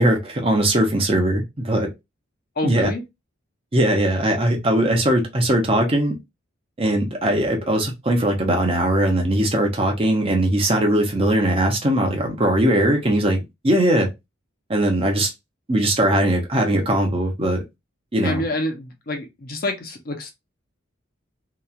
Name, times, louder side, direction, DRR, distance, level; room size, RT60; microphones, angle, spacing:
voice 1, 0.0-1.9 2.6-2.9 3.7-6.2 6.8-14.1 14.7-15.3 15.7-17.6 18.1-18.4, right 1 dB, 30° right, 0.7 m, -20 dB
voice 2, 2.6-3.0 18.2-20.3, left 1 dB, 50° left, 0.7 m, -27 dB
2.9 x 2.3 x 2.4 m
head